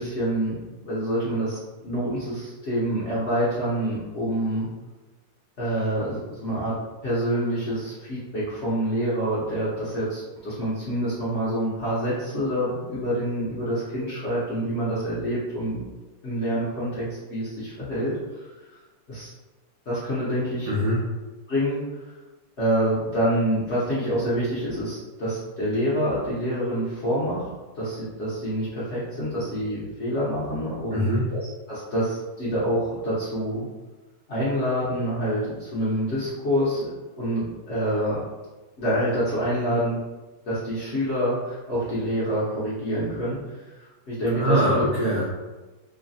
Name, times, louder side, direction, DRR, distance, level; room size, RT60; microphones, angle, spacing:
voice 1, 0.0-4.7 5.6-6.7 7.0-15.8 16.2-18.5 19.1-19.3 19.9-20.7 21.5-22.1 22.6-27.5 27.7-33.7 34.3-36.9 37.2-38.2 38.8-40.0 40.5-44.9, equal, 55° left, -9 dB, 0.7 m, -27 dB
voice 2, 20.7-21.0 30.9-31.3 44.4-45.3, equal, 85° right, -6 dB, 0.6 m, -23 dB
3.1 x 2.1 x 2.6 m, 1.2 s
omnidirectional pair, 2.0 m